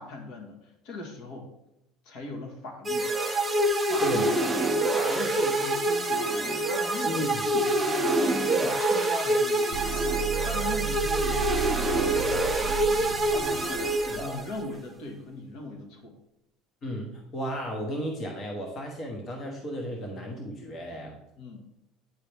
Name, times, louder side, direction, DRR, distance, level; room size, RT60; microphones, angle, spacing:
voice 1, 0.0-1.5 2.0-3.1 3.8-4.5 4.8-16.2 21.4-21.6, left 2 dB, 65° left, 2 dB, 1.6 m, -40 dB
sound 1, 2.8-14.7, right 1 dB, 10° right, 0.6 m, -26 dB
voice 2, 7.0-7.4 14.0-14.4 16.8-21.1, equal, 35° left, 1 dB, 1.1 m, -34 dB
sound 2, 9.7-14.6, right 10 dB, 80° right, 0.4 m, -34 dB
9.1 x 4.4 x 3.4 m, 0.81 s
cardioid pair, 135°, 0 cm